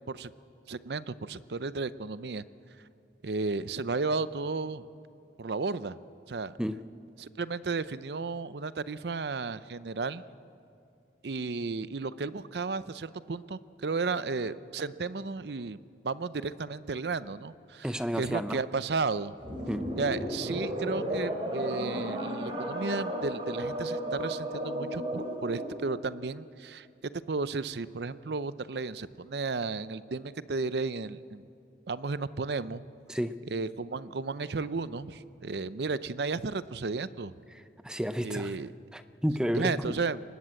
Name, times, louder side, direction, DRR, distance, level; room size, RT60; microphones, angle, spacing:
voice 1, 0.7-2.4 3.2-4.9 5.4-6.0 6.3-6.5 7.2-10.2 11.2-17.9 18.2-19.3 20.0-26.9 27.3-31.4 31.9-32.8 33.5-37.3 38.2-38.7 39.5-40.2, right 4 dB, 70° right, 15 dB, 0.6 m, -33 dB
voice 2, 17.8-18.6 19.7-19.9 33.1-33.3 37.5-38.6 38.9-40.0, equal, 5° right, 11 dB, 0.6 m, -31 dB
sound 1, 19.4-25.9, equal, 30° right, 3.4 m, -34 dB
23.5 x 19.5 x 7.7 m, 2.5 s
head